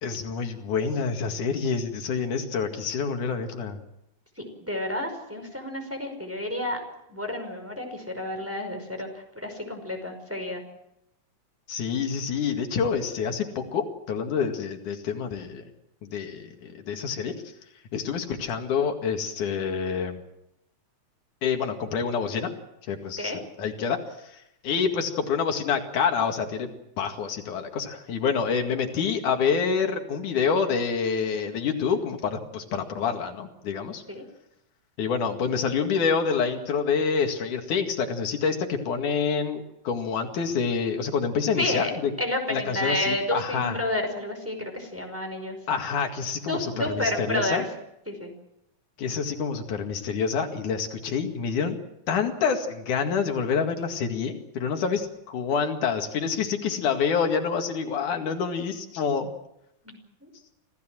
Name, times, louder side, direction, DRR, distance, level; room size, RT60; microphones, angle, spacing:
voice 1, 0.0-3.8 11.7-15.6 16.0-17.3 17.9-20.2 21.4-22.5 22.9-23.3 23.6-24.4 24.6-34.0 35.0-41.8 42.5-43.8 45.7-47.6 49.0-51.8 52.1-59.3, left 6 dB, 90° left, 4 dB, 3.6 m, -27 dB
voice 2, 4.4-6.8 7.1-10.6 23.2-23.4 34.1-34.2 41.6-41.9 42.2-45.6 46.4-47.7 48.1-48.3 59.8-60.3, left 1 dB, 5° right, 3 dB, 5.1 m, -30 dB
26.5 x 17.0 x 7.7 m, 0.83 s
omnidirectional pair, 3.4 m